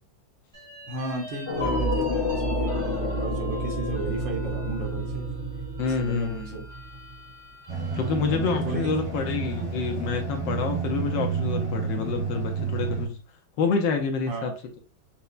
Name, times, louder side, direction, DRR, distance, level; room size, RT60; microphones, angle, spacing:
sound 1, 0.5-8.2 8.6-8.7 9.1-9.8, left 1 dB, 30° right, 0.6 m, -42 dB
voice 1, 0.9-5.2 5.8-6.6 8.1-9.3 14.3-14.6, right 2 dB, 70° right, 1 dB, 1.5 m, -35 dB
sound 2, 1.5-7.3, equal, 50° left, 0.9 m, -29 dB
voice 2, 5.8-6.6 7.9-13.2 13.6-14.5, left 5 dB, 75° left, 3 dB, 1.2 m, -27 dB
sound 3, 7.7-13.1, right 5 dB, 20° left, 0.9 m, -30 dB
5.4 x 2.0 x 2.4 m, 0.35 s
omnidirectional pair, 2.2 m